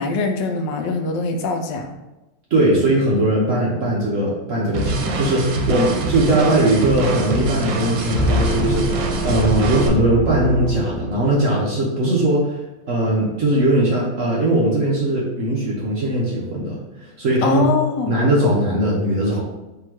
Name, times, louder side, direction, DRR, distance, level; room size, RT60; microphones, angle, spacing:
voice 1, 0.0-2.0 17.4-18.2, left 4 dB, 75° left, 4 dB, 1.2 m, -22 dB
voice 2, 2.5-12.6 12.9-17.8 18.1-19.4, right 1 dB, 55° right, -5 dB, 0.9 m, -19 dB
sound 1, 4.7-9.9, right 2 dB, 90° right, 1.4 m, -24 dB
sound 2, 8.1-11.5, right 1 dB, 10° left, 0.5 m, -24 dB
3.5 x 2.8 x 4.5 m, 1.0 s
omnidirectional pair, 2.0 m